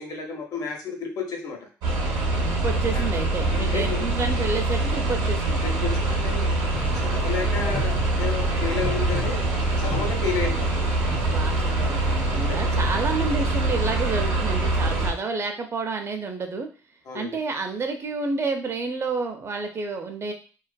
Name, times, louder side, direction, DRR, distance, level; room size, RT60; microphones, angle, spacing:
voice 1, 0.0-1.7 2.9-3.0 3.5-4.1 5.6-6.5 6.9-9.4 9.8-10.7 11.7-11.8 12.3-12.8 17.1-17.3, left 5 dB, 65° left, 1 dB, 0.8 m, -31 dB
sound 1, 1.8-15.1, right 2 dB, 85° right, 0.7 m, -24 dB
voice 2, 2.4-5.6 11.3-16.7 17.1-20.3, right 4 dB, 40° right, 5 dB, 0.5 m, -30 dB
sound 2, 6.7-15.1, left 2 dB, 15° left, 0.7 m, -38 dB
2.5 x 2.3 x 2.2 m, 0.37 s
supercardioid pair, 75°, 7 cm